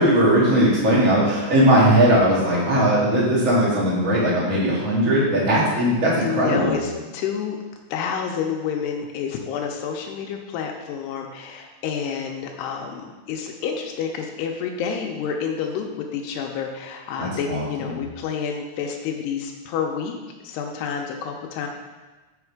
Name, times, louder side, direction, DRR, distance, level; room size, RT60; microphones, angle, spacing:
voice 1, 0.0-6.7 17.2-18.0, right 1 dB, 30° right, -6 dB, 1.5 m, -19 dB
voice 2, 6.2-7.6 7.9-20.2 20.4-21.7, left 7 dB, 85° left, 2 dB, 2.7 m, -29 dB
7.9 x 5.7 x 4.7 m, 1.2 s
omnidirectional pair, 4.8 m